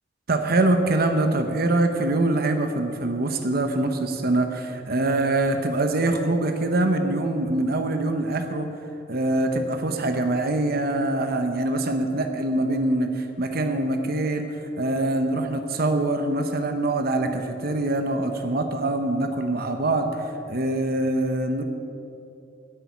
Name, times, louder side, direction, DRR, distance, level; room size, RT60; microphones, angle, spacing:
voice 1, 0.3-8.7 9.1-21.6, right 2 dB, 55° right, 6 dB, 1.0 m, -24 dB
10.5 x 8.4 x 9.5 m, 2.8 s
head